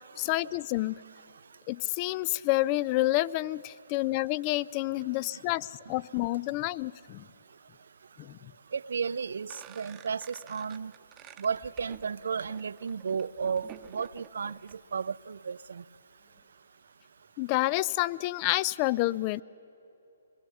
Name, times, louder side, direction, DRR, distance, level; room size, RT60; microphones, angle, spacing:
voice 1, 0.2-1.0 1.7-7.2 8.2-8.5 17.4-19.4, left 18 dB, 30° left, 0.4 m, -29 dB
voice 2, 8.7-10.9 11.4-14.6 14.9-15.8, right 6 dB, 70° right, 0.5 m, -33 dB
sound 1, 9.5-14.8, right 11 dB, 20° right, 0.9 m, -50 dB
23.5 x 21.5 x 7.2 m
figure-of-eight pair, 135°, 0 cm